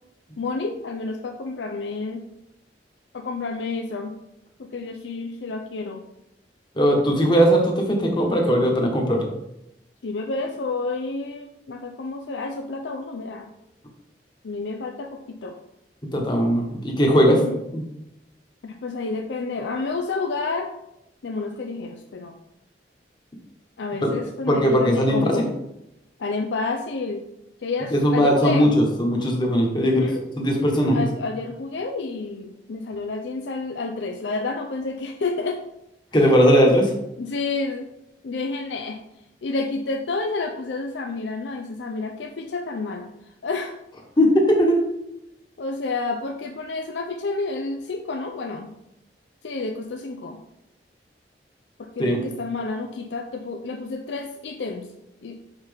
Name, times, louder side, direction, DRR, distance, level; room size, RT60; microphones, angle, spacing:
voice 1, 0.4-2.2 3.1-4.2 4.6-6.0 10.0-13.5 14.4-15.6 17.2-17.6 18.6-20.7 21.2-22.4 23.8-25.5 26.2-27.2 27.6-28.7 29.8-30.2 30.9-35.6 36.1-36.3 37.2-37.9 38.2-39.0 39.4-43.1 43.4-43.8 45.6-48.7 49.4-50.4 51.8-54.9 55.2-55.4, left 3 dB, 90° left, 4 dB, 0.5 m, -29 dB
voice 2, 6.7-9.3 16.1-17.4 17.7-17.8 24.0-24.1 24.4-25.5 27.9-30.1 30.4-31.1 36.1-36.9 44.2-44.8 52.0-52.2, equal, 25° left, 0 dB, 1.3 m, -19 dB
5.8 x 5.6 x 3.5 m, 0.85 s
head